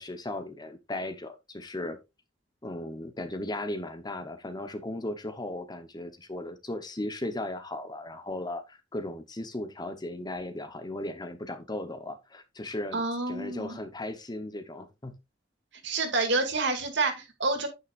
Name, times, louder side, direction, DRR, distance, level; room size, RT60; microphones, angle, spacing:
voice 1, 0.0-2.0 2.6-15.2, left 1 dB, 20° left, 1.0 m, -36 dB
voice 2, 12.9-13.8 15.8-17.7, right 3 dB, 65° right, 2.4 m, -28 dB
9.5 x 8.7 x 2.5 m
head